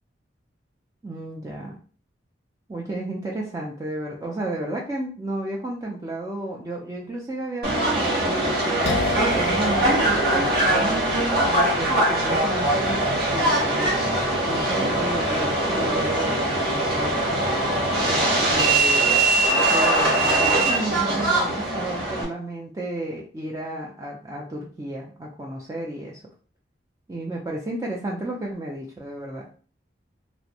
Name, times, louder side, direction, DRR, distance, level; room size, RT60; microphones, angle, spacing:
voice 1, 1.0-1.8 2.7-9.0 9.3-11.2 11.7-13.0 13.3-14.1 14.4-17.4 18.0-19.1 19.7-26.2 27.1-29.5, right 1 dB, 15° right, -3 dB, 0.3 m, -32 dB
Subway metro underground, 7.6-22.2, right 1 dB, 55° right, 0.8 m, -22 dB
sound 1, 8.9-16.4, left 1 dB, 65° left, 0.4 m, -34 dB
2.5 x 2.1 x 2.7 m, 0.39 s
head